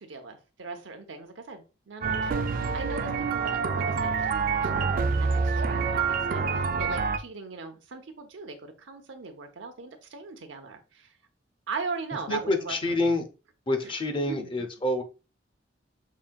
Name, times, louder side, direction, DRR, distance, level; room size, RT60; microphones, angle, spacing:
voice 1, 0.0-11.1 11.7-13.1 13.8-13.9 14.3-14.7, right 4 dB, 80° right, 5 dB, 0.7 m, -39 dB
sound 1, 2.0-7.2, right 5 dB, 50° right, 0.4 m, -27 dB
voice 2, 12.3-13.3 13.7-15.0, left 2 dB, 25° left, 5 dB, 0.6 m, -27 dB
5.4 x 2.7 x 2.2 m, 0.32 s
head